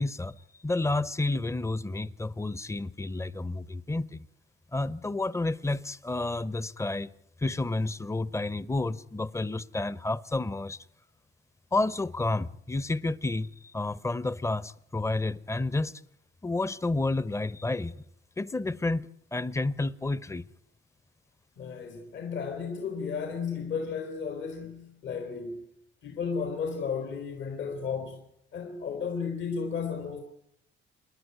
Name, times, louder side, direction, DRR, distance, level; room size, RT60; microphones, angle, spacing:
voice 1, 0.0-4.3 4.7-7.1 7.4-10.8 11.7-16.0 16.4-18.0 18.4-20.4, left 2 dB, 15° left, 0.9 m, -30 dB
voice 2, 21.6-25.7 26.0-28.2 28.5-30.2, left 6 dB, 70° left, 3.5 m, -34 dB
28.5 x 11.0 x 9.5 m
cardioid pair, 90°, 20 cm